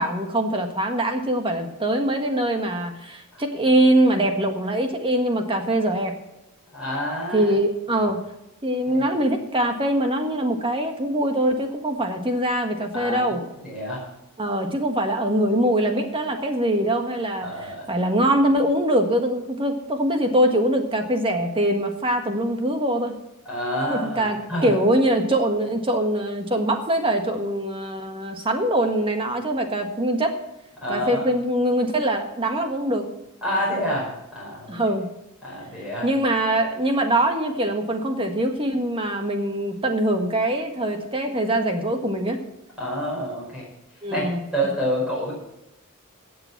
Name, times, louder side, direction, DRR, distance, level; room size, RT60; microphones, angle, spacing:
voice 1, 0.0-6.1 7.3-8.2 8.6-13.4 14.4-23.1 23.9-30.3 30.9-33.1 34.7-35.1 36.0-42.4 44.0-44.4, right 1 dB, 25° right, 4 dB, 1.6 m, -23 dB
voice 2, 6.7-7.5 8.0-8.1 8.9-9.0 12.9-14.1 17.4-17.9 23.5-24.7 30.8-31.2 33.4-34.8 35.4-36.1 42.8-43.6 44.1-45.3, equal, 5° right, -5 dB, 5.3 m, -28 dB
16.5 x 7.1 x 5.9 m, 0.88 s
head